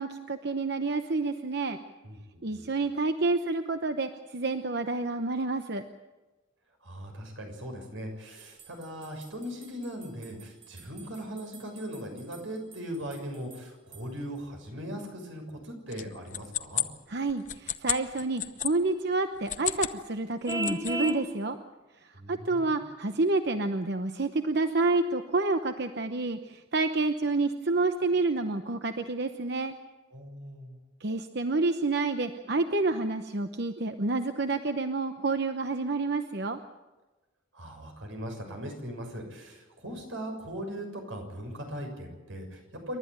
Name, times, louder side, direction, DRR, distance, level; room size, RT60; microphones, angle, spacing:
voice 1, 0.0-1.8 2.4-5.8 17.1-21.6 22.3-29.7 31.0-36.6, right 3 dB, 55° right, 8 dB, 0.9 m, -29 dB
voice 2, 2.0-2.7 6.8-16.8 22.1-22.8 30.1-30.8 37.5-43.0, equal, 90° right, 3 dB, 6.7 m, -39 dB
sound 1, 8.4-14.4, right 7 dB, 40° right, 5.4 m, -55 dB
sound 2, 15.9-18.7 19.4-20.0 20.3-21.1, left 11 dB, 40° left, 0.8 m, -32 dB
Vehicle horn car horn honking, 20.5-21.2, right 1 dB, 15° right, 2.0 m, -31 dB
28.5 x 12.5 x 9.3 m, 1.1 s
head